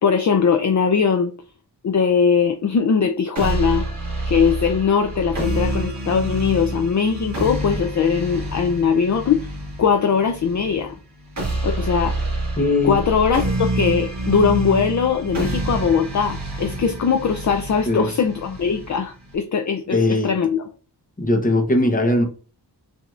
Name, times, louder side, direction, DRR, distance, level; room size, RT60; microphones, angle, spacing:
voice 1, 0.0-1.3 1.8-3.9 4.3-9.5 9.8-10.9 11.6-12.2 12.8-20.6, left 6 dB, 45° left, 0.4 m, -20 dB
sound 1, 3.4-19.4, right 2 dB, 45° right, 1.8 m, -27 dB
voice 2, 12.6-13.0 17.9-18.1 19.9-20.4 21.2-22.2, left 2 dB, 20° left, 0.9 m, -19 dB
5.9 x 2.7 x 2.4 m
wide cardioid pair, 115°, 41 cm